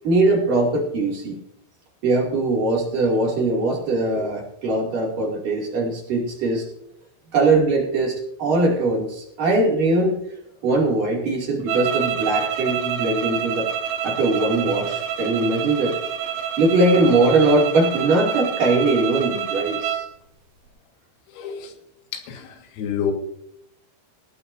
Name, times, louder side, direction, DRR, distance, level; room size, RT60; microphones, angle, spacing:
voice 1, 0.0-1.4 2.0-6.7 7.3-10.2 10.6-13.7 14.0-16.0 16.6-20.1, right 2 dB, 45° right, -1 dB, 3.7 m, -21 dB
sound 1, 11.7-20.1, right 9 dB, 80° right, 4.2 m, -27 dB
voice 2, 21.3-21.7 22.1-23.1, left 8 dB, 85° left, 4 dB, 4.5 m, -29 dB
19.5 x 15.0 x 2.7 m, 0.72 s
omnidirectional pair, 5.9 m